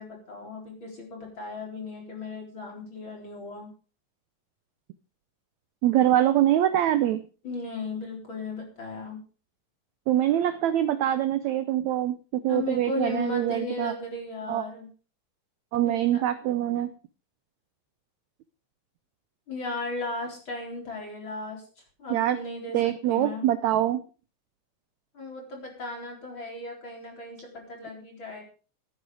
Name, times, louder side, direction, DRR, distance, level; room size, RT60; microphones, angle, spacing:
voice 1, 0.0-3.7 7.4-9.2 12.5-14.9 15.8-16.2 19.5-21.6 22.0-22.8 23.1-23.5 25.1-28.4, left 3 dB, 35° left, 0 dB, 4.5 m, -36 dB
voice 2, 5.8-7.2 10.1-12.2 12.4-13.9 14.5-14.6 15.7-16.9 22.1-22.4 22.7-24.0, right 12 dB, 80° right, 12 dB, 1.6 m, -24 dB
15.5 x 9.2 x 4.8 m, 0.37 s
omnidirectional pair, 4.0 m